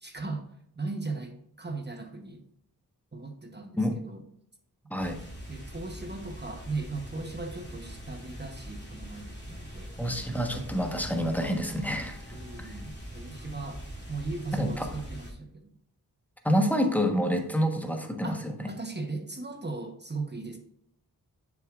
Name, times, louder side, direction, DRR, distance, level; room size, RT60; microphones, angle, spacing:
voice 1, 0.0-0.5 0.7-2.4 3.1-4.3 5.5-9.9 12.3-13.8 14.1-15.7 18.2-20.6, right 3 dB, 25° right, 5 dB, 1.0 m, -38 dB
sound 1, 5.0-15.3, equal, 30° left, 2.4 m, -43 dB
voice 2, 10.0-12.2 12.6-12.7 14.5-14.9 16.4-18.4, equal, 5° left, 4 dB, 1.3 m, -27 dB
6.8 x 6.2 x 2.5 m, 0.72 s
cardioid pair, 45°, 39 cm